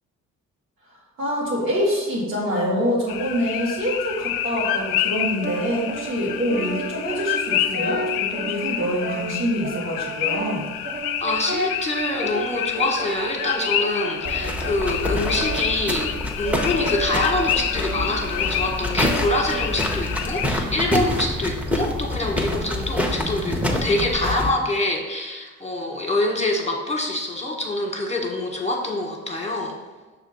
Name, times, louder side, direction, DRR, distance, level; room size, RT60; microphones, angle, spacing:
voice 1, 1.2-10.7, equal, 80° right, -5 dB, 2.0 m, -25 dB
sound 1, 3.1-20.5, left 10 dB, 65° left, 0.5 m, -28 dB
Brass instrument, 5.4-20.2, right 2 dB, 25° right, 0.6 m, -34 dB
voice 2, 11.2-29.7, left 2 dB, 15° left, 1 dB, 1.4 m, -25 dB
sound 2, 14.2-24.5, left 1 dB, 5° right, 1.0 m, -27 dB
6.2 x 3.5 x 5.5 m, 1.2 s
hypercardioid pair, 50°, 39 cm